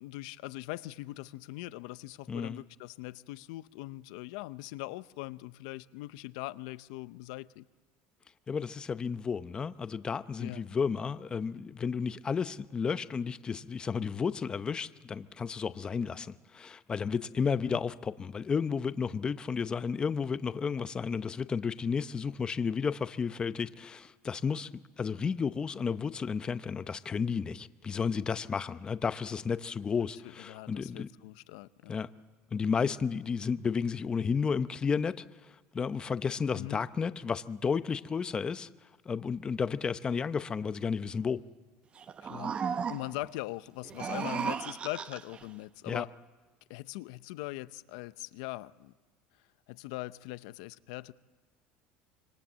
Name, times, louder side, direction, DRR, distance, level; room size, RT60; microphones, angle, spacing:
voice 1, 0.0-7.6 10.4-10.6 17.5-17.8 30.4-32.0 36.5-36.8 42.2-46.1 46.7-48.9 49.7-51.1, left 19 dB, 80° left, 0.7 m, -41 dB
voice 2, 2.3-2.6 8.5-24.7 25.0-31.1 31.9-32.1 32.5-38.7 39.1-41.4 45.9-46.0, left 6 dB, 25° left, 0.8 m, -32 dB
sound 1, 42.0-43.3 43.8-45.5, right 6 dB, 30° right, 0.8 m, -35 dB
26.0 x 24.0 x 7.5 m
supercardioid pair, 125°, 4 cm